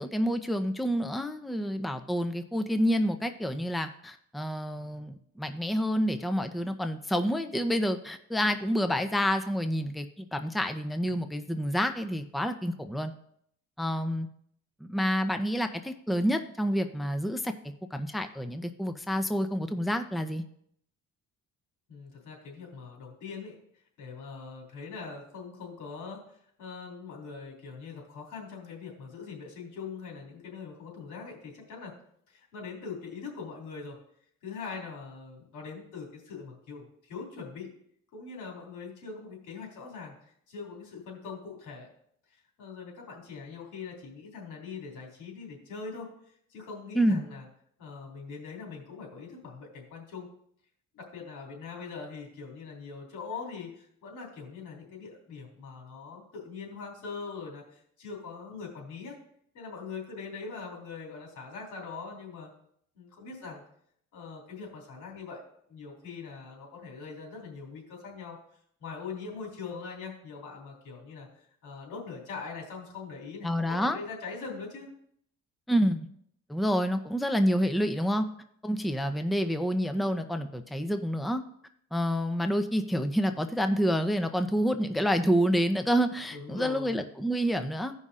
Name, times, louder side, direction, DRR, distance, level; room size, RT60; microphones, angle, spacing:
voice 1, 0.0-13.1 13.8-14.3 14.8-17.5 17.9-20.4 46.9-47.3 73.4-74.0 75.7-76.1 76.5-78.2 78.6-81.4 81.9-87.9, equal, ahead, 8 dB, 0.6 m, -28 dB
voice 2, 21.9-23.6 24.0-31.9 32.3-34.0 34.4-37.7 38.1-40.1 40.5-41.9 42.3-46.1 46.5-47.4 47.8-50.3 50.9-59.2 59.5-62.5 62.9-63.6 64.1-65.4 65.7-68.4 68.8-74.9 86.3-87.0, left 5 dB, 90° left, 0 dB, 2.9 m, -42 dB
16.0 x 5.5 x 2.5 m, 0.68 s
cardioid pair, 90°, 30 cm